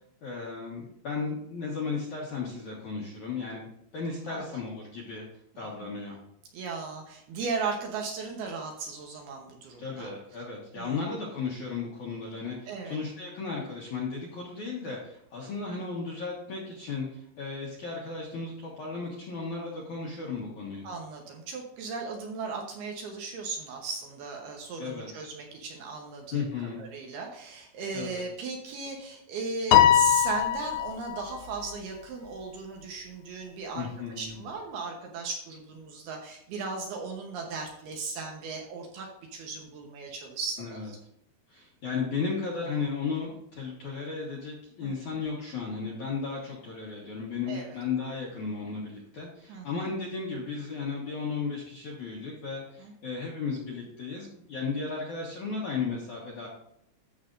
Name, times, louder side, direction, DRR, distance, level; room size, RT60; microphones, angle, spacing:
voice 1, 0.2-3.7 3.9-5.3 5.6-6.2 9.8-20.8 24.8-25.1 26.3-26.8 27.9-28.2 33.8-34.4 40.6-40.9 41.5-56.5, left 4 dB, 65° left, -2 dB, 2.0 m, -35 dB
voice 2, 4.3-4.6 5.6-5.9 6.5-10.1 10.8-11.0 12.7-13.0 20.8-26.4 26.8-41.0 44.8-44.9 47.5-47.8 49.5-49.8 52.8-52.9, right 4 dB, 70° right, 1 dB, 2.7 m, -37 dB
Piano, 29.7-31.3, left 11 dB, 80° left, 2.6 m, -21 dB
14.0 x 6.5 x 2.6 m, 0.74 s
omnidirectional pair, 5.3 m